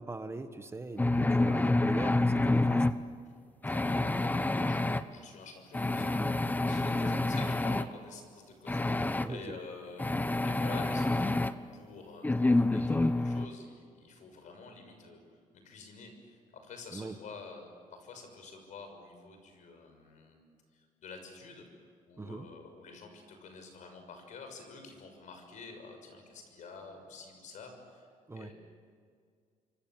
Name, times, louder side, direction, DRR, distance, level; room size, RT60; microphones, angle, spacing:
voice 1, 0.0-2.9 7.0-7.2 9.2-9.6 16.9-17.2 22.2-22.5 28.3-28.5, right 3 dB, 20° right, 9 dB, 1.3 m, -41 dB
sound 1, 1.0-2.9 3.6-5.0 5.7-7.9 8.7-9.3 10.0-11.5 12.2-13.5, left 2 dB, 10° left, 0.9 m, -28 dB
voice 2, 3.7-11.4 11.7-20.4 20.7-21.7 22.1-28.1 28.3-28.5, left 4 dB, 65° left, 5 dB, 6.4 m, -49 dB
28.0 x 24.5 x 7.6 m, 2.1 s
cardioid pair, 105°, 14 cm